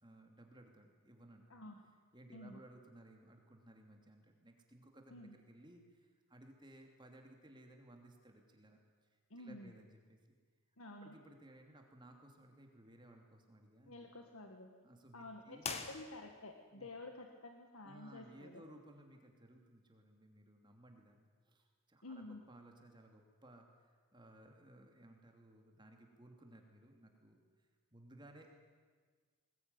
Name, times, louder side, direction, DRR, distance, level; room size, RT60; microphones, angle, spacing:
voice 1, 0.0-1.5 2.1-10.4 11.0-14.1 14.8-15.9 16.7-16.9 17.8-28.5, right 1 dB, 20° right, 3 dB, 2.8 m, -60 dB
voice 2, 9.3-9.7 10.8-11.1 13.9-14.7 15.1-18.7 22.0-22.4, left 2 dB, 80° left, 4 dB, 1.8 m, -51 dB
sound 1, 15.6-16.6, left 5 dB, 30° left, 1.7 m, -44 dB
20.5 x 20.5 x 9.7 m, 1.5 s
head